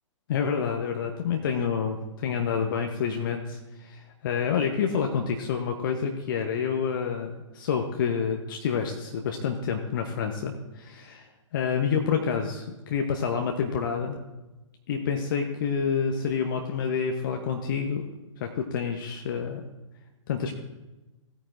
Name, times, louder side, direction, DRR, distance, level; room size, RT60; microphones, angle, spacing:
voice 1, 0.3-11.3 11.5-14.2 14.9-18.0 18.4-19.6 20.3-20.6, left 6 dB, 40° left, 3 dB, 0.8 m, -28 dB
16.0 x 9.0 x 2.5 m, 1.1 s
figure-of-eight pair, 120°, 17 cm